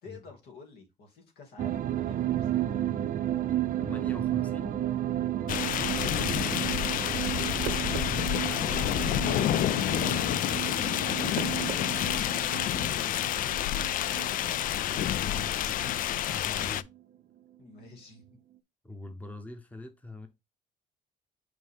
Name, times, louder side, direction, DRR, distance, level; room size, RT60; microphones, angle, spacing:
voice 1, 0.0-2.7 5.4-5.7 12.9-13.3 17.6-18.4, left 4 dB, 70° left, 2.5 m, -50 dB
sound 1, 1.6-16.2 16.5-16.6, right 12 dB, 55° right, 0.6 m, -33 dB
voice 2, 3.8-4.8 6.9-11.3 14.8-15.8 16.1-16.9 18.8-20.3, left 2 dB, 10° left, 1.0 m, -44 dB
sound 2, 5.5-16.8, left 12 dB, 55° left, 0.4 m, -29 dB
sound 3, 7.7-8.2 9.6-9.9 11.4-11.9 12.3-12.4 13.5-13.6, right 9 dB, 80° right, 0.8 m, -39 dB
6.2 x 5.1 x 3.6 m
cardioid pair, 110°, 17 cm